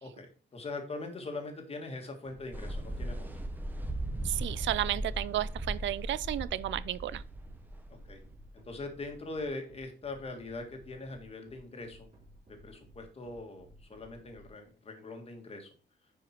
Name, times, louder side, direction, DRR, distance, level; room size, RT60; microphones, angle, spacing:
voice 1, 0.0-3.4 7.9-8.2 8.7-12.1 12.6-15.7, left 2 dB, 30° left, 1.8 m, -42 dB
sound 1, 2.2-14.5, right 1 dB, 30° right, 3.8 m, -57 dB
sound 2, 2.5-9.1, right 1 dB, 10° right, 0.9 m, -38 dB
voice 2, 4.2-7.2, right 13 dB, 85° right, 0.4 m, -32 dB
10.0 x 5.0 x 4.5 m
wide cardioid pair, 175°, 19 cm